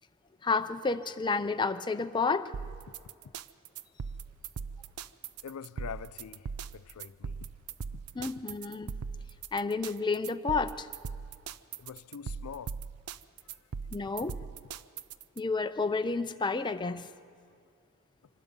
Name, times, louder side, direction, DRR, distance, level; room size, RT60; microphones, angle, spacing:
voice 1, 0.4-2.5 8.1-8.9 9.5-10.9 13.9-14.4 15.4-17.1, left 4 dB, 20° left, 0.5 m, -30 dB
sound 1, 2.5-15.4, right 6 dB, 85° right, 0.5 m, -40 dB
voice 2, 5.4-7.4 11.8-12.8, left 7 dB, 80° left, 0.4 m, -44 dB
25.0 x 19.5 x 5.4 m
head